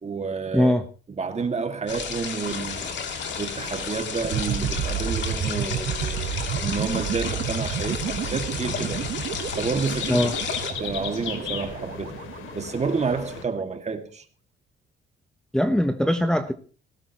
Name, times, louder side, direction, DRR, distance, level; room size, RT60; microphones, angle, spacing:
voice 1, 0.0-0.7 1.1-2.9 3.4-9.0 9.6-10.3 10.8-12.2 12.5-14.2, right 4 dB, 35° right, 2.2 m, -30 dB
voice 2, 0.5-0.8 10.1-10.3 15.5-16.5, left 1 dB, 5° left, 1.0 m, -21 dB
sound 1, 1.9-10.7, left 6 dB, 65° left, 2.9 m, -33 dB
sound 2, 2.5-13.4, left 7 dB, 80° left, 2.8 m, -38 dB
sound 3, 4.2-13.1, right 9 dB, 70° right, 1.3 m, -31 dB
18.5 x 16.0 x 3.0 m
cardioid pair, 90°, 20 cm